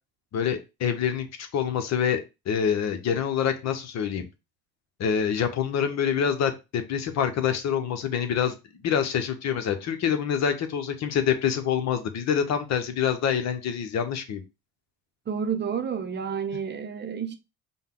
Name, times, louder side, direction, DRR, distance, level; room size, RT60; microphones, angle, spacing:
voice 1, 0.3-4.3 5.0-8.5 8.8-14.4, left 8 dB, 55° left, 0.9 m, -26 dB
voice 2, 15.3-17.3, right 7 dB, 35° right, 0.7 m, -30 dB
5.3 x 2.3 x 3.8 m
supercardioid pair, 75°, 32 cm